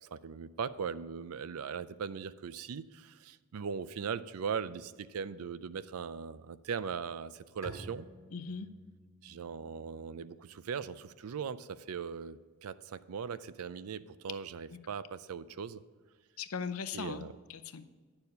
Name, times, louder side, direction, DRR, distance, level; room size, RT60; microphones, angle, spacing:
voice 1, 0.0-8.1 9.2-15.8 16.9-17.3, right 6 dB, 80° right, 16 dB, 0.4 m, -39 dB
Bowed string instrument, 7.6-11.1, equal, 15° right, 1.9 m, -52 dB
voice 2, 8.3-8.7 14.7-14.8 16.4-17.8, left 6 dB, 70° left, 11 dB, 0.6 m, -39 dB
9.7 x 6.9 x 5.4 m, 1.5 s
head